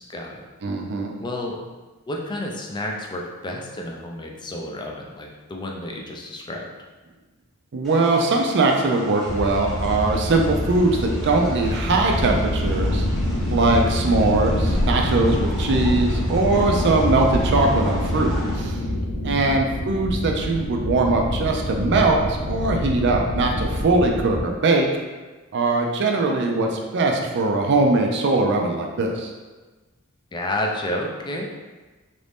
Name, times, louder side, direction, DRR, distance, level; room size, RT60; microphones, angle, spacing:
voice 1, 0.1-0.5 1.2-1.6 2.1-6.7 19.2-19.6 30.3-31.5, left 1 dB, 20° left, 0 dB, 0.4 m, -30 dB
voice 2, 0.6-1.1 7.7-13.1 13.5-18.8 19.2-24.9 25.5-29.3, right 3 dB, 55° right, 2 dB, 0.5 m, -21 dB
sound 1, 7.8-18.6, equal, ahead, 0.9 m, -38 dB
sound 2, 9.2-24.4, left 1 dB, 85° left, 0.6 m, -25 dB
3.0 x 2.6 x 3.4 m, 1.2 s
head